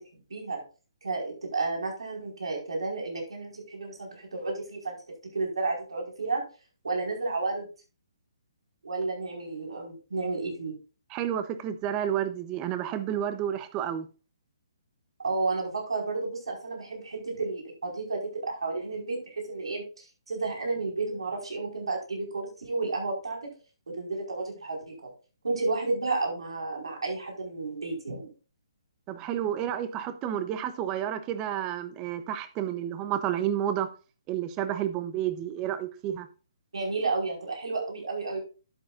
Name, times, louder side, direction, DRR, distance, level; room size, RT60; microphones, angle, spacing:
voice 1, 0.3-0.6 1.0-5.0 5.3-6.4 6.8-7.7 8.8-10.7 15.2-23.5 23.9-25.1 25.4-28.3 36.7-38.4, right 3 dB, 90° right, 5.0 m, -32 dB
voice 2, 11.1-14.1 29.1-33.9 34.3-36.3, right 10 dB, 20° right, 0.8 m, -30 dB
11.5 x 8.6 x 2.5 m
hypercardioid pair, 155°, 3 cm